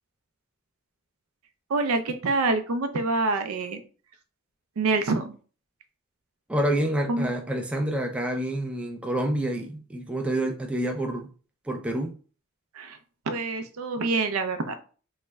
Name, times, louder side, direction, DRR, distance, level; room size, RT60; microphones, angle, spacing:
voice 1, 1.7-3.8 4.8-5.4 7.1-7.3 12.7-13.0 13.3-14.7, right 3 dB, 75° right, 0.5 m, -26 dB
voice 2, 6.5-11.3 11.7-12.2, right 1 dB, 5° right, 0.3 m, -28 dB
3.1 x 2.1 x 3.4 m
head